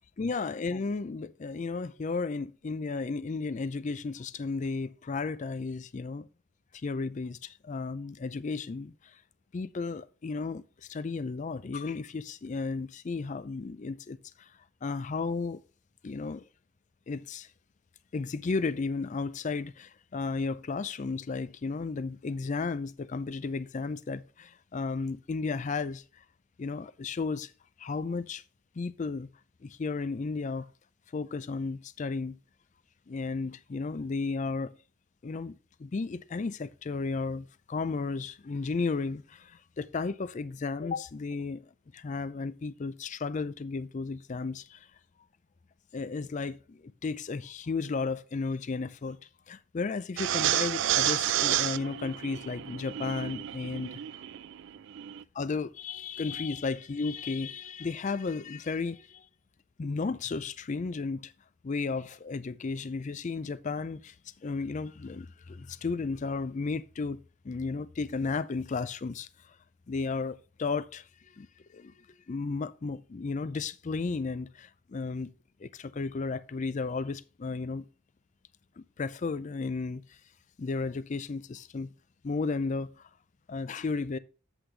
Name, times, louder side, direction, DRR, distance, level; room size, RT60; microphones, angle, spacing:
voice 1, 0.2-6.3 6.7-9.2 9.5-14.5 14.8-15.6 16.0-16.4 17.1-17.5 18.1-26.0 26.6-27.5 27.8-28.4 28.8-29.3 29.6-30.7 31.1-32.4 33.1-34.8 35.2-41.6 41.9-44.9 45.9-49.2 49.5-54.0 55.4-59.3 59.8-61.3 61.6-64.2 64.4-67.2 67.4-69.6 69.9-71.5 71.7-71.9 72.3-75.3 75.6-77.9 78.8-80.2 80.6-81.9 82.2-83.1 83.5-84.2, left 4 dB, 35° left, 0.4 m, -34 dB
sound 1, 50.2-55.2, right 12 dB, 60° right, 0.3 m, -30 dB
8.0 x 7.9 x 3.3 m
head